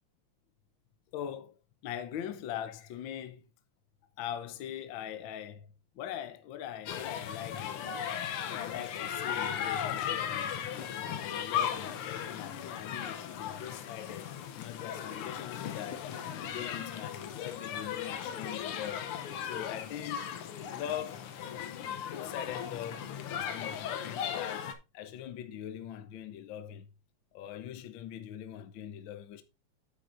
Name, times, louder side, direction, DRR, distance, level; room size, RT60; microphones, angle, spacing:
voice 1, 1.1-1.6 1.8-3.4 4.2-5.7 5.9-8.0 8.5-10.6 11.0-19.1 19.4-20.3 20.7-21.2 22.1-26.9 27.3-29.4, left 10 dB, 70° left, 1.4 m, -42 dB
sound 1, 6.9-24.7, left 9 dB, 90° left, 1.7 m, -37 dB
9.2 x 8.0 x 2.6 m
omnidirectional pair, 2.4 m